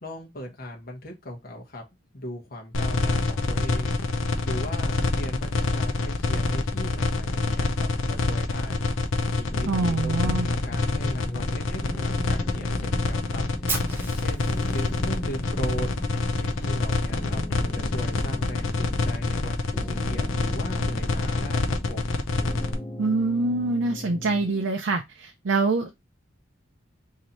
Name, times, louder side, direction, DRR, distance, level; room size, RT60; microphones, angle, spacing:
voice 1, 0.0-1.8 2.1-4.0 4.4-8.8 9.3-13.4 14.0-15.9 16.4-22.2, equal, 50° left, 1.1 m, -38 dB
sound 1, 2.7-22.7, left 2 dB, 85° left, 0.7 m, -26 dB
neo-soul-chords, 9.5-11.5 11.8-14.2 14.4-16.8 17.1-19.4 19.7-22.1 22.4-24.7, left 1 dB, 15° left, 0.5 m, -39 dB
voice 2, 9.7-10.5 23.0-26.0, right 3 dB, 75° right, 0.5 m, -25 dB
Fire, 13.7-15.7, right 3 dB, 10° right, 1.0 m, -35 dB
3.2 x 2.8 x 3.9 m
head